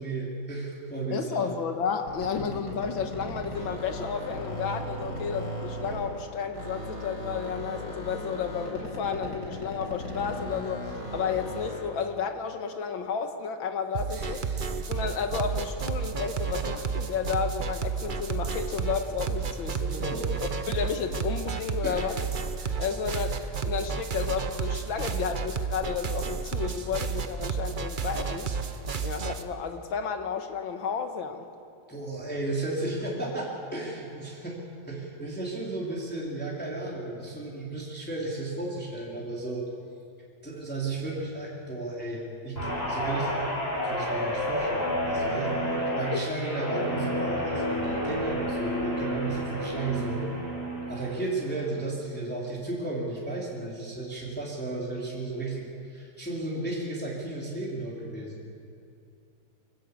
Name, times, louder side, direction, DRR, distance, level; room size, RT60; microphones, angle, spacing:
voice 1, 0.0-1.5 2.4-2.5 14.1-14.6 19.7-20.4 21.8-22.1 31.9-34.6 34.9-39.6 40.4-43.3 43.8-50.3 50.9-58.4, right 2 dB, 5° left, -4 dB, 3.2 m, -34 dB
voice 2, 1.1-14.4 14.9-20.2 20.7-22.2 22.6-28.5 29.0-31.5, left 6 dB, 75° left, 7 dB, 2.0 m, -32 dB
sound 1, 2.0-6.2 6.5-11.9, equal, 60° left, 6.0 m, -37 dB
sound 2, 13.9-29.4, right 5 dB, 45° right, 0.6 m, -31 dB
Guitar, 42.6-51.1 51.5-51.9, equal, 30° left, 6.2 m, -30 dB
24.5 x 14.0 x 8.3 m, 2.5 s
omnidirectional pair, 2.2 m